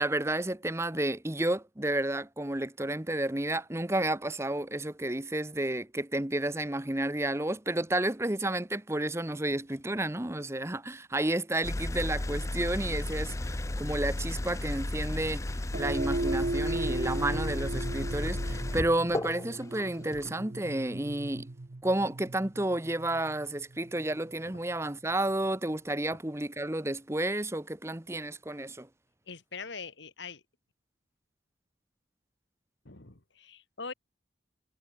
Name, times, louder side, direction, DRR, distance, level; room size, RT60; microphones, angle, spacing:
voice 1, 0.0-21.5 21.8-28.9, right 1 dB, 15° right, 0.9 m, -31 dB
sound 1, 11.6-20.3, left 1 dB, 15° left, 0.5 m, -34 dB
sound 2, 15.7-24.2, right 2 dB, 50° right, 0.8 m, -36 dB
voice 2, 29.3-30.4 32.8-33.9, left 4 dB, 70° left, 2.3 m, -43 dB
head